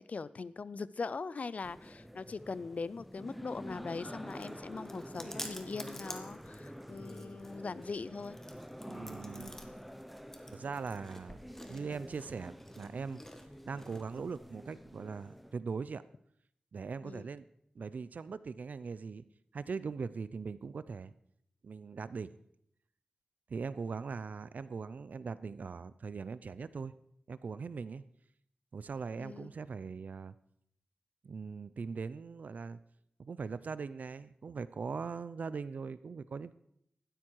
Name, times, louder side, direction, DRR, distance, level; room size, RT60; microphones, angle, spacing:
voice 1, 0.0-8.4 17.0-17.3 29.2-29.5, left 4 dB, 65° left, 18 dB, 0.5 m, -41 dB
sound 1, 1.6-15.5, equal, ahead, 0.9 m, -48 dB
Chewing mastication, 3.7-14.4, left 1 dB, 15° left, 1.7 m, -51 dB
voice 2, 8.9-9.6 10.5-11.4 11.7-13.2 13.6-16.0 16.7-17.4 17.7-19.2 19.5-21.1 21.6-22.3 23.5-26.9 27.3-28.0 28.7-30.3 31.2-32.8 33.2-36.5, right 5 dB, 80° right, 16 dB, 0.6 m, -40 dB
15.0 x 12.5 x 4.7 m, 0.72 s
cardioid pair, 60°, 3 cm